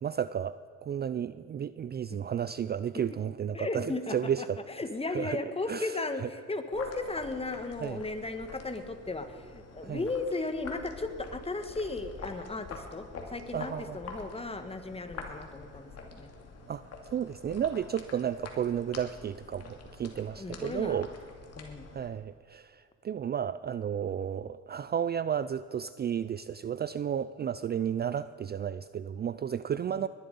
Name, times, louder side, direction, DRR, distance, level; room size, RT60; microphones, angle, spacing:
voice 1, 0.0-0.6 0.8-4.6 5.1-5.4 5.7-6.3 7.8-8.0 9.8-10.0 13.5-14.0 16.7-21.1 21.9-30.1, right 9 dB, 35° right, 15 dB, 0.4 m, -33 dB
voice 2, 3.5-9.3 9.5-16.3 20.4-21.0 21.6-21.9 30.0-30.1, left 3 dB, 20° left, 8 dB, 1.5 m, -36 dB
sound 1, 6.7-22.1, left 4 dB, 55° left, 2.6 m, -46 dB
20.0 x 11.5 x 5.4 m, 2.3 s
cardioid pair, 90°, 30 cm